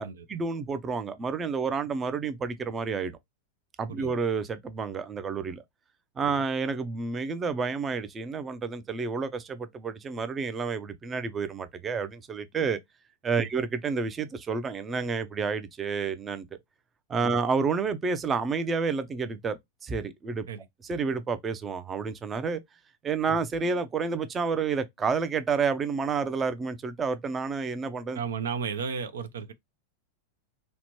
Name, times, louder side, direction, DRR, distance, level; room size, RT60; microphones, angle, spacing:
voice 1, 0.0-3.2 3.8-5.6 6.2-12.8 13.2-16.5 17.1-20.5 20.8-22.6 23.0-28.2, right 5 dB, 25° right, 0.4 m, -30 dB
voice 2, 28.2-29.5, right 6 dB, 85° right, 0.4 m, -34 dB
2.9 x 2.1 x 2.9 m
hypercardioid pair, 115°, 0 cm